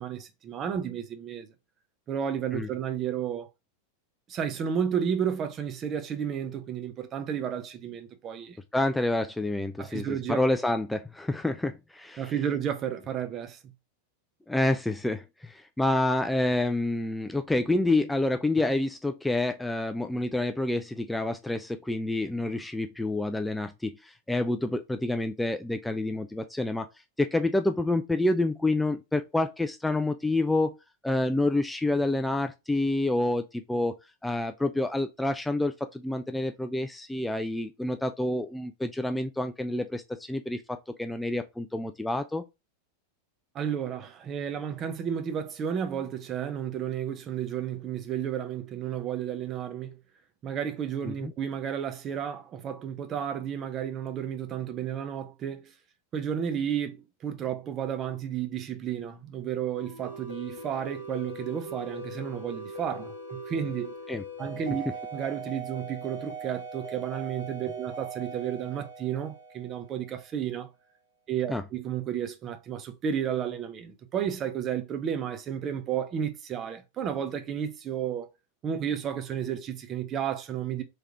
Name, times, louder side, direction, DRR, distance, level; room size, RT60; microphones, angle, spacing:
voice 1, 0.0-1.5 2.1-3.5 4.3-8.6 9.8-10.4 12.2-13.6 43.5-50.0 50.4-55.7 56.1-63.9 64.4-64.8 65.1-70.7 71.3-78.3 78.6-80.8, right 8 dB, 30° right, 0.7 m, -32 dB
voice 2, 8.7-12.3 14.5-26.9 27.2-30.7 31.0-33.9 34.2-42.4 51.1-51.3 64.1-64.2 71.5-71.6, left 2 dB, 5° left, 0.3 m, -28 dB
sound 1, 59.7-70.1, right 2 dB, 90° right, 2.0 m, -40 dB
3.5 x 3.3 x 2.8 m
figure-of-eight pair, 90°, 0 cm